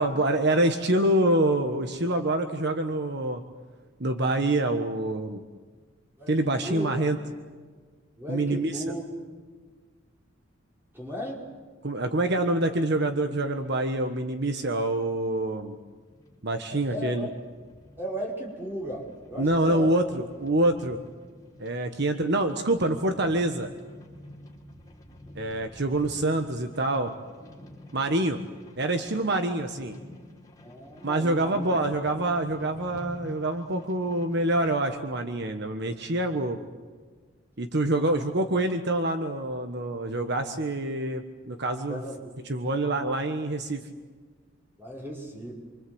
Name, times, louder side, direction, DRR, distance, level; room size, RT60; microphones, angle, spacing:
voice 1, 0.0-3.4 4.0-5.4 6.3-7.2 8.3-8.8 11.8-15.8 16.4-17.3 19.4-21.0 21.6-23.7 25.3-27.1 27.9-28.4 28.8-30.0 31.0-36.6 37.6-42.0 42.4-43.8, right 1 dB, 60° right, 6 dB, 1.4 m, -26 dB
voice 2, 6.2-6.9 8.2-9.0 10.9-11.4 16.7-17.3 18.0-19.9 30.6-31.7 41.9-42.3 44.8-45.5, equal, 10° right, -2 dB, 5.3 m, -36 dB
sound 1, 15.4-34.8, left 1 dB, 20° left, 4.1 m, -49 dB
27.5 x 25.0 x 8.0 m, 1.5 s
head